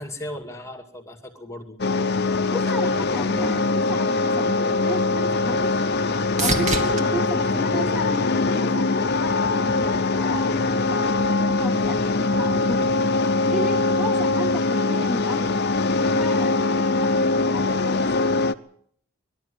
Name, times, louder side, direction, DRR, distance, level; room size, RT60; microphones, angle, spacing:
voice 1, 0.0-1.8 2.6-3.2, left 1 dB, 15° left, 3 dB, 2.2 m, -37 dB
sound 1, 1.8-18.5, left 3 dB, 50° left, 0.8 m, -22 dB
voice 2, 2.5-13.0 13.5-15.6 15.9-18.4, equal, 5° right, 1 dB, 1.6 m, -33 dB
sound 2, 4.6-8.9 9.4-10.0 17.8-17.9, right 2 dB, 35° right, 2.5 m, -32 dB
21.0 x 12.5 x 9.7 m, 0.64 s
head